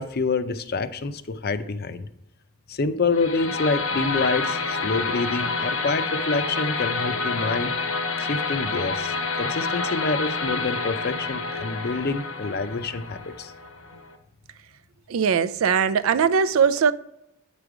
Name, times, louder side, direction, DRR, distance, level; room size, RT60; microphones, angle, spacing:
voice 1, 0.0-2.1 2.7-7.7 8.2-13.5, left 3 dB, 45° left, 0.5 m, -27 dB
sound 1, 3.1-14.1, left 4 dB, 80° left, 1.0 m, -28 dB
voice 2, 15.1-16.9, right 6 dB, 70° right, 0.4 m, -20 dB
8.8 x 5.0 x 4.8 m
head